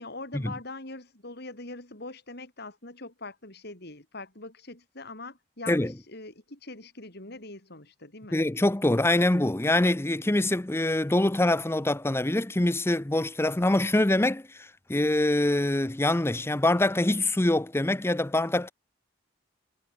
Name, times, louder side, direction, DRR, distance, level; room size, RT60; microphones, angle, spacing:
voice 1, 0.0-8.4, left 2 dB, 60° left, 6.5 m, -42 dB
voice 2, 8.3-18.7, left 1 dB, 15° left, 0.7 m, -24 dB
head